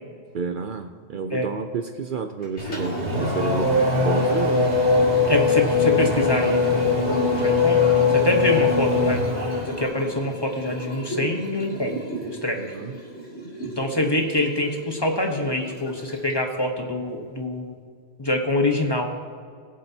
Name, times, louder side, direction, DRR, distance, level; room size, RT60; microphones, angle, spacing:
voice 1, 0.3-4.7 12.5-13.0, right 5 dB, 55° right, 6 dB, 0.7 m, -30 dB
Liquid, 2.4-16.5, right 1 dB, 85° left, 2.9 m, -35 dB
Race car auto racing / Accelerating revving vroom, 2.6-9.8, left 4 dB, 40° right, 2.2 m, -21 dB
voice 2, 5.3-7.8 8.1-11.9 12.2-12.6 13.7-17.7 18.2-19.1, left 1 dB, 25° left, 2 dB, 1.0 m, -25 dB
21.5 x 7.5 x 2.8 m, 2.1 s
omnidirectional pair, 1.1 m